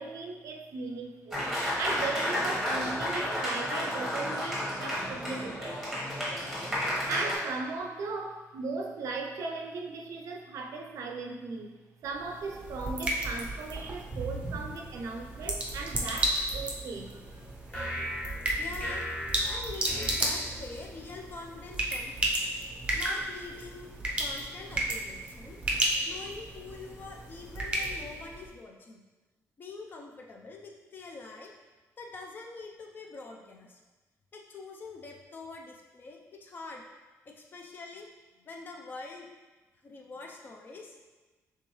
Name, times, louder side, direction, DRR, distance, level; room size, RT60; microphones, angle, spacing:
voice 1, 0.0-1.5 1.8-5.9 7.1-17.2, right 3 dB, 70° right, 2 dB, 0.5 m, -37 dB
Applause, 1.3-7.3, left 1 dB, 5° right, 1.1 m, -32 dB
sound 1, 12.1-28.5, right 1 dB, 20° right, 0.6 m, -34 dB
sound 2, 17.7-21.1, equal, 20° left, 1.0 m, -38 dB
voice 2, 18.6-19.0 19.5-22.4 22.9-23.9 24.2-25.6 26.1-29.0 29.6-31.5 32.0-33.8 34.3-36.8 37.3-38.1 38.4-39.3 39.8-40.9, left 3 dB, 35° left, 1 dB, 0.5 m, -45 dB
4.5 x 3.4 x 3.1 m, 1.2 s
wide cardioid pair, 170°, 6 cm